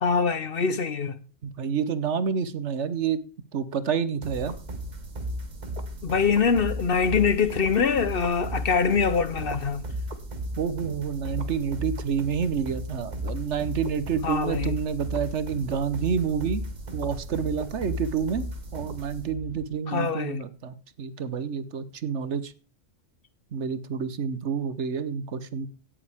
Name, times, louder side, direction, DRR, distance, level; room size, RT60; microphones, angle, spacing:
voice 1, 0.0-1.1 6.0-9.8 14.2-14.8 19.9-20.4, left 5 dB, 55° left, 0.9 m, -24 dB
voice 2, 1.4-3.2 3.5-4.6 10.6-16.6 16.9-18.5 18.7-22.5 23.5-25.7, right 6 dB, 70° right, 1.2 m, -28 dB
sound 1, 4.2-19.7, right 1 dB, 40° right, 1.2 m, -35 dB
17.0 x 7.3 x 3.4 m
omnidirectional pair, 1.3 m